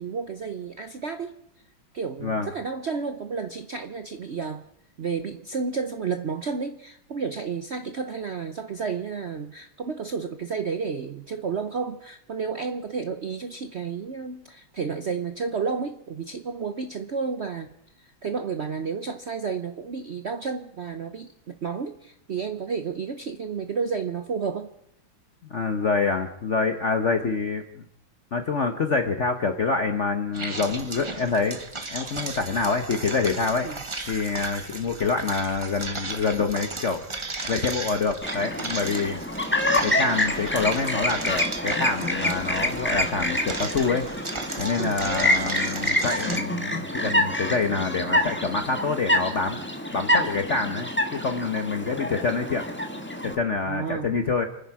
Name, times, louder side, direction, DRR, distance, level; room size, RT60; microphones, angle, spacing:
voice 1, 0.0-1.3 1.9-4.6 5.0-17.7 18.0-24.7 33.6-33.8 44.8-45.0 53.7-54.2, right 5 dB, 65° right, 8 dB, 0.6 m, -31 dB
voice 2, 25.5-27.8 28.3-31.6 31.9-33.7 34.1-37.0 37.5-39.2 39.8-44.1 44.6-49.6 49.9-52.6 53.2-54.5, left 4 dB, 45° left, 6 dB, 1.1 m, -26 dB
sound 1, 30.3-46.4, right 3 dB, 25° right, 0.7 m, -35 dB
Chirp tweet, 38.2-53.4, left 1 dB, 5° left, 1.2 m, -27 dB
29.5 x 10.0 x 4.8 m, 0.79 s
omnidirectional pair, 2.2 m